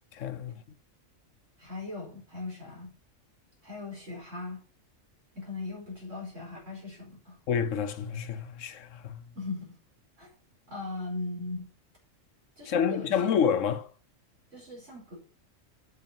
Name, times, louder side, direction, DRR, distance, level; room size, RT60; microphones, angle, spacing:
voice 1, 0.1-0.6 7.5-9.2 12.7-13.9, left 7 dB, 70° left, 1.2 m, -28 dB
voice 2, 1.6-2.9 3.6-4.6 5.4-7.4 9.4-9.8 10.2-10.3 10.7-11.7 12.6-13.4 14.5-15.2, left 2 dB, 65° right, 5.0 m, -39 dB
8.1 x 6.3 x 7.1 m
omnidirectional pair, 1.4 m